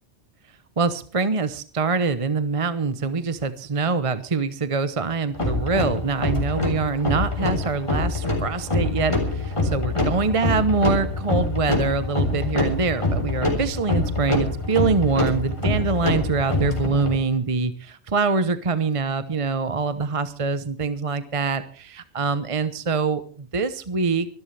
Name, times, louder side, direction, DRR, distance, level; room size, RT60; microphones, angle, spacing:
voice 1, 0.8-24.3, right 4 dB, 30° right, 12 dB, 0.9 m, -24 dB
sound 1, 5.3-17.2, left 2 dB, 25° left, 3.9 m, -25 dB
24.5 x 13.0 x 3.3 m, 0.41 s
omnidirectional pair, 1.2 m